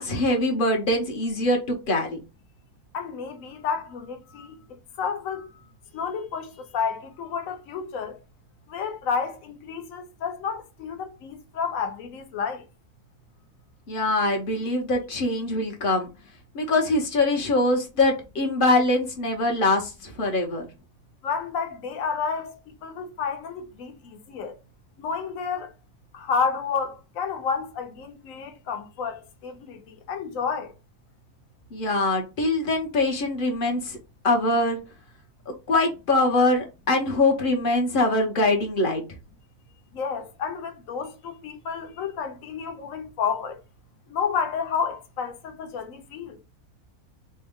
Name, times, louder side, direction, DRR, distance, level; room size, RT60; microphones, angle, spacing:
voice 1, 0.0-2.2 13.9-16.1 16.5-20.6 31.7-34.0 34.2-34.8 35.5-39.0, left 2 dB, 45° left, 0.8 m, -23 dB
voice 2, 2.9-4.6 5.0-5.5 5.9-8.2 8.7-12.6 21.2-22.5 22.8-24.5 25.0-25.7 26.1-30.7 39.9-43.6 44.1-46.4, left 6 dB, 70° left, 1.1 m, -30 dB
4.2 x 2.1 x 3.5 m
omnidirectional pair, 1.5 m